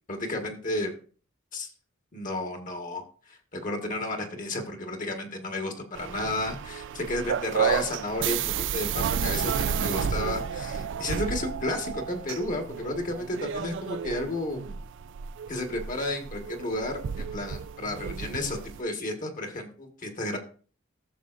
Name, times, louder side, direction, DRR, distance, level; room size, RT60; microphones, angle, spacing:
voice 1, 0.1-0.9 1.5-1.7 2.1-14.8 15.5-20.4, left 1 dB, 40° left, 4 dB, 1.4 m, -32 dB
sound 1, 5.9-18.8, right 7 dB, 65° right, 0.4 m, -32 dB
14.5 x 6.9 x 2.5 m, 0.41 s
head